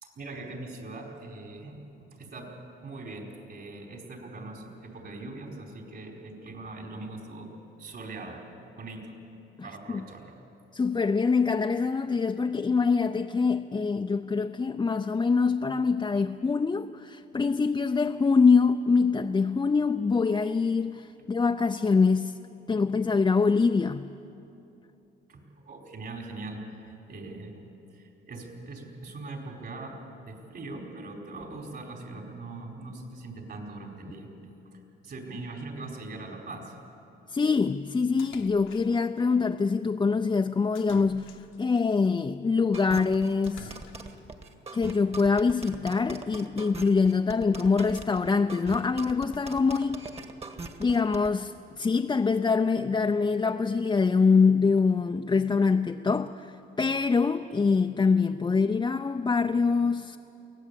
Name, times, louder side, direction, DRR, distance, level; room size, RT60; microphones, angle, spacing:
voice 1, 0.0-2.5 2.8-7.5 7.8-9.1 9.6-10.4 21.2-21.3 25.3-27.6 27.9-30.0 30.3-36.7, right 2 dB, 55° right, 4.7 m, -41 dB
voice 2, 9.6-10.0 10.7-22.4 22.7-24.2 37.3-43.8 44.7-50.1 50.8-60.2, left 4 dB, 20° left, 0.6 m, -24 dB
Splash splatter, 38.2-39.2 40.8-41.8 43.4-44.3, left 7 dB, 80° left, 1.3 m, -48 dB
sound 1, 42.7-51.3, right 3 dB, 30° right, 1.9 m, -41 dB
23.5 x 17.5 x 8.5 m
cardioid pair, 90°, 20 cm